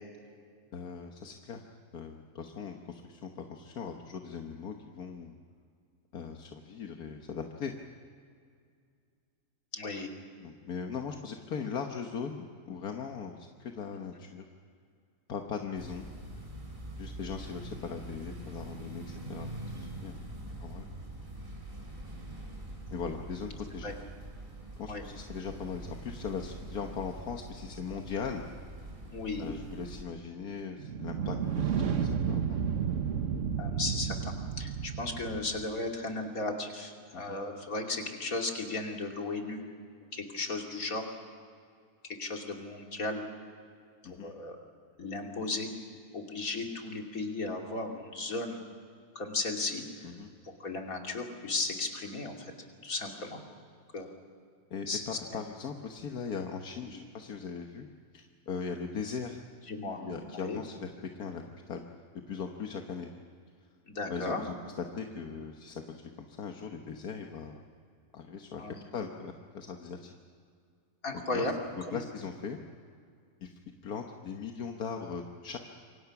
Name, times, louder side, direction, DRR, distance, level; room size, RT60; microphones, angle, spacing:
voice 1, 0.7-1.6 1.9-5.4 6.1-7.7 10.4-14.5 15.3-16.1 17.0-19.5 19.8-20.2 20.6-20.9 22.9-23.9 24.8-28.4 29.4-32.6 37.1-37.4 44.0-44.3 50.0-50.3 54.7-57.9 58.1-59.4 60.0-61.9 62.3-63.1 64.1-67.7 68.1-68.6 68.9-70.1 71.3-72.6 73.4-73.5 73.8-75.6, left 6 dB, 85° left, 3 dB, 1.7 m, -39 dB
voice 2, 9.7-10.1 23.8-23.9 24.9-25.0 29.1-29.5 33.6-39.7 40.1-41.1 42.2-43.2 44.0-44.6 45.0-45.7 46.1-48.6 49.1-50.1 50.4-52.5 52.8-53.4 53.9-54.1 54.9-55.4 56.9-57.0 59.7-60.0 60.3-60.6 63.9-64.4 68.6-68.8 71.0-71.5 71.9-72.0, left 2 dB, 65° left, 2 dB, 3.1 m, -35 dB
sound 1, 15.8-30.0, right 1 dB, 35° right, 3.6 m, -44 dB
sound 2, 30.8-35.7, right 7 dB, 60° right, 1.4 m, -32 dB
28.0 x 24.0 x 6.0 m, 2.2 s
omnidirectional pair, 1.6 m